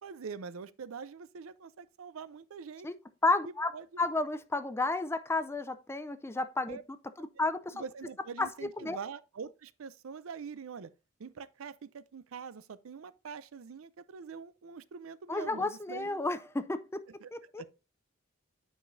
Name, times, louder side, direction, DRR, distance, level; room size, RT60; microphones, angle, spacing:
voice 1, 0.0-2.9 3.7-3.9 6.7-6.8 7.7-10.9 11.2-16.2 17.1-17.7, right 6 dB, 85° right, 0.5 m, -44 dB
voice 2, 3.2-3.7 4.0-6.8 7.2-7.7 8.4-8.5 8.8-9.0 15.3-17.0 17.3-17.6, left 3 dB, 10° left, 0.4 m, -31 dB
9.1 x 5.0 x 2.6 m
head